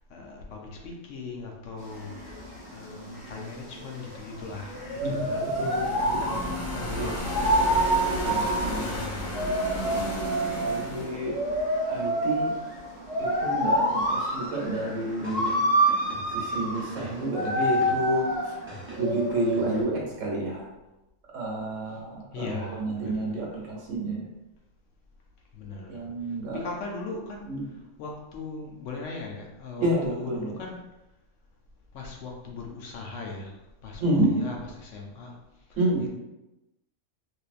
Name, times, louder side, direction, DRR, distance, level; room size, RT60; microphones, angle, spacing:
voice 1, 0.0-2.2 2.7-7.9 8.5-9.4 21.9-22.0 22.3-23.9 25.5-30.9 31.9-36.1, left 4 dB, 70° left, 0 dB, 0.9 m, -40 dB
sound 1, 1.8-19.8, right 1 dB, 25° left, 1.0 m, -28 dB
sound 2, 4.7-12.7, left 1 dB, 90° left, 1.2 m, -34 dB
voice 2, 5.0-5.8 6.1-6.4 7.0-7.1 8.2-9.1 9.4-9.5 10.6-11.3 11.8-12.5 13.2-15.6 16.3-18.5 19.0-20.7 21.3-24.2 25.9-26.6 27.5-27.7 29.8-30.5 34.0-34.3 35.8-36.0, right 1 dB, 75° right, -2 dB, 1.1 m, -29 dB
sound 3, 15.2-18.3 18.7-20.0, right 1 dB, 15° right, 0.4 m, -44 dB
3.1 x 2.6 x 2.4 m, 0.97 s
omnidirectional pair, 1.4 m